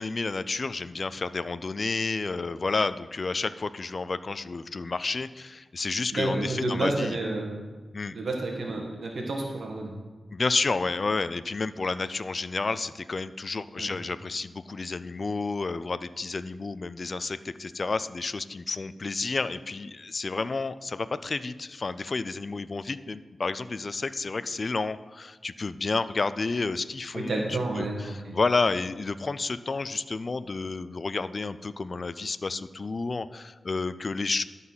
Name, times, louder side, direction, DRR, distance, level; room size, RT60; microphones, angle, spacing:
voice 1, 0.0-7.2 7.9-8.1 10.3-34.4, left 3 dB, 45° left, 14 dB, 0.3 m, -30 dB
voice 2, 6.1-7.6 8.1-9.9 13.8-13.9 27.1-28.3, right 2 dB, 70° right, 1 dB, 1.3 m, -30 dB
12.0 x 4.1 x 5.6 m, 1.3 s
wide cardioid pair, 80°, 0 cm